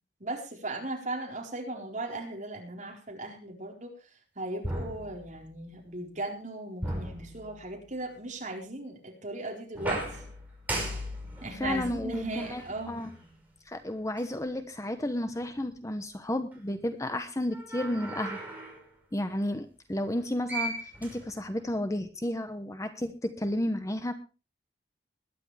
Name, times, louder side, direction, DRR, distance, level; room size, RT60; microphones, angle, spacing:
voice 1, 0.2-3.9 4.4-10.2 11.4-13.0, right 2 dB, 45° right, 0 dB, 4.3 m, -37 dB
sound 1, 4.6-5.7 6.8-8.0 9.7-13.3 14.2-14.3 17.5-18.8 20.2-20.3 20.5-21.7, right 1 dB, 10° right, 5.6 m, -37 dB
voice 2, 11.6-12.6 12.9-13.1 13.7-18.4 19.1-24.1, left 1 dB, 20° left, 9 dB, 1.0 m, -32 dB
21.0 x 10.5 x 3.4 m, 0.31 s
head